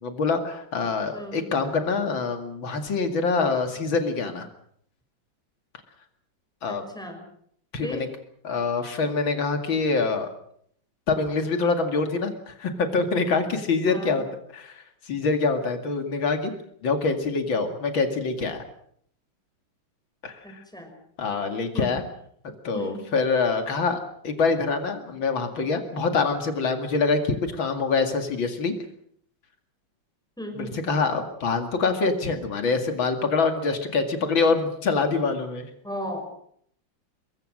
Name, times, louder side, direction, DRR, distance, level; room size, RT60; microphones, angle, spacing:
voice 1, 0.0-4.5 6.6-6.8 7.7-8.1 8.4-10.3 11.1-14.2 14.5-16.5 16.8-18.6 20.2-20.6 21.2-22.0 22.6-24.0 24.2-28.7 30.6-35.7, left 4 dB, 85° left, 6 dB, 3.0 m, -25 dB
voice 2, 1.1-1.5 6.7-7.2 7.8-8.0 13.9-14.2 20.4-20.9 21.7-21.9 22.7-23.0 30.4-30.8 35.8-36.3, equal, ahead, 4 dB, 5.3 m, -35 dB
23.0 x 22.5 x 6.4 m, 0.66 s
omnidirectional pair, 2.1 m